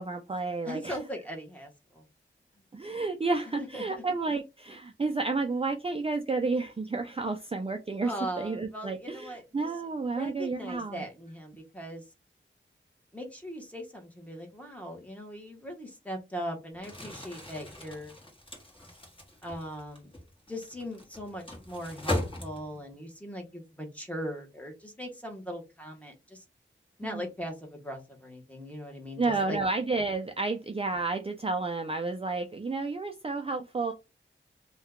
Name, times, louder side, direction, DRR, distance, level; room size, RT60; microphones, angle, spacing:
voice 1, 0.0-1.0 2.7-11.0 27.0-27.3 29.2-33.9, right 3 dB, 30° right, 4 dB, 0.4 m, -31 dB
voice 2, 0.6-2.1 3.6-4.0 8.0-9.7 10.1-12.0 13.1-18.2 19.4-20.1 20.5-26.4 27.0-29.6, equal, 5° left, 1 dB, 1.1 m, -39 dB
Crumpling crinkling, 16.7-22.9, left 1 dB, 25° left, 1.4 m, -38 dB
2.7 x 2.3 x 3.6 m, 0.26 s
wide cardioid pair, 60°, 21 cm